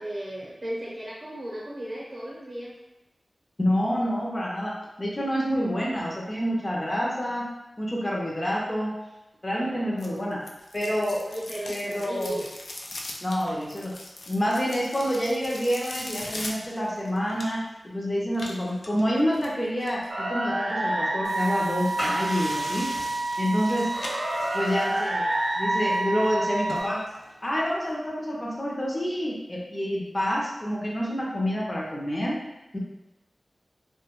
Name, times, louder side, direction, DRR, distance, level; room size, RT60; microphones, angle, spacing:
voice 1, 0.0-2.7 9.5-10.4 11.2-12.5, right 1 dB, 40° right, -6 dB, 0.6 m, -36 dB
voice 2, 3.6-7.5 7.8-8.9 9.4-10.4 10.7-11.2 11.7-12.3 13.2-13.9 14.3-22.9 23.4-23.9 24.5-25.3 25.6-27.0 27.4-32.4 32.7-32.8, equal, 30° left, -4 dB, 0.5 m, -28 dB
sound 1, 10.0-17.8 18.3-20.1 22.0-22.5 22.8-23.6 23.9-24.8 25.2-25.3 25.9-26.0 26.3-26.4 26.7-26.8 27.2-27.3, left 2 dB, 80° left, 0.3 m, -40 dB
sound 2, 20.1-26.8, right 1 dB, 85° right, 0.4 m, -28 dB
sound 3, 21.2-27.9, equal, 55° left, 1.0 m, -39 dB
2.2 x 2.1 x 2.9 m, 0.97 s
wide cardioid pair, 60°, 0 cm